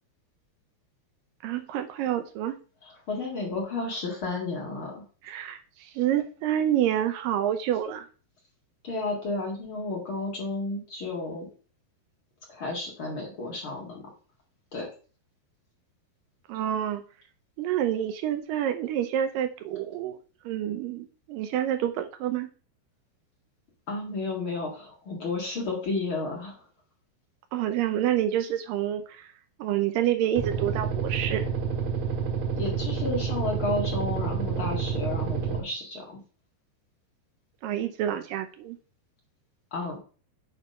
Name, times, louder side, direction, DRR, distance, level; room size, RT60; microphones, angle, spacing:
voice 1, 1.4-2.6 5.2-8.1 16.5-17.1 17.6-20.2 20.4-22.5 27.5-29.3 29.6-31.5 37.6-38.8, right 11 dB, 80° right, 8 dB, 2.0 m, -28 dB
voice 2, 2.8-5.0 8.8-11.5 12.5-14.1 14.7-14.9 23.9-26.7 32.6-36.2 39.7-40.0, left 3 dB, 40° left, -1 dB, 2.1 m, -32 dB
sound 1, 30.4-35.6, right 6 dB, 50° right, 2.6 m, -29 dB
9.0 x 3.6 x 5.2 m, 0.37 s
omnidirectional pair, 4.7 m